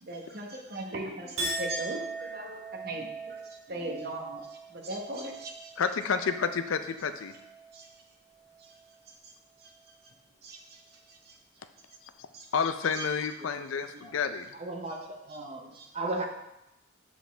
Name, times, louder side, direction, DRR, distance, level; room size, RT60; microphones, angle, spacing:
voice 1, 0.0-5.7 7.7-7.9 8.6-8.7 9.6-9.7 10.0-10.1 10.4-10.8 11.1-11.4 12.3-12.5 12.9-13.1 15.7-15.9, right 1 dB, 50° right, 1 dB, 1.0 m, -39 dB
Chink clink, 1.4-7.9 8.3-8.9, right 3 dB, 85° right, 1.6 m, -40 dB
voice 2, 5.8-7.3 12.5-14.5, left 6 dB, 80° left, 10 dB, 0.5 m, -29 dB
voice 3, 13.4-14.2 14.5-16.3, right 2 dB, 30° right, 3 dB, 0.6 m, -37 dB
7.1 x 5.0 x 3.4 m, 0.91 s
head